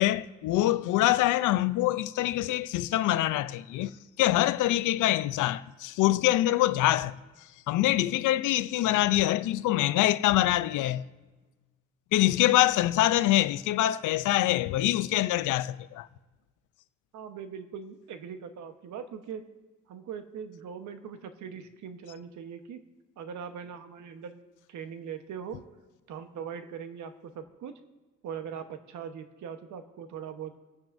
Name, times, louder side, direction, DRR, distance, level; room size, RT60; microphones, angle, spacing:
voice 1, 0.0-3.9 4.2-7.1 7.7-11.0 12.1-16.1, left 15 dB, 85° left, 0.5 m, -25 dB
voice 2, 17.1-19.5 19.9-22.8 23.2-24.4 24.7-25.6 26.1-27.8 28.2-30.5, right 7 dB, 75° right, 1.1 m, -41 dB
26.0 x 9.2 x 2.6 m
cardioid pair, 90°, 30 cm